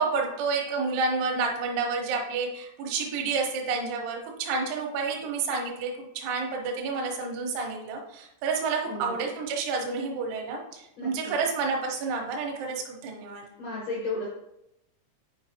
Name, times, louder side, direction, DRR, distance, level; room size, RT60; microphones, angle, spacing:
voice 1, 0.0-13.5, right 4 dB, 80° right, 0 dB, 3.3 m, -29 dB
voice 2, 8.9-9.2 11.0-11.3 13.6-14.3, left 3 dB, 80° left, -4 dB, 1.7 m, -34 dB
8.9 x 4.6 x 2.8 m, 0.83 s
omnidirectional pair, 5.4 m